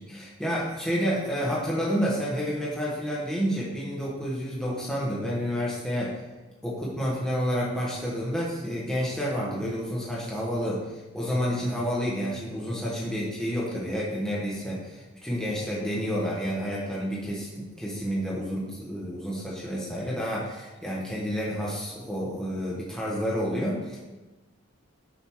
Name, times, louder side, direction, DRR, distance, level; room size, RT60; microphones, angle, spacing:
voice 1, 0.0-6.2 6.6-10.8 11.1-24.0, equal, 5° left, -6 dB, 1.4 m, -29 dB
7.2 x 4.0 x 4.6 m, 1.2 s
head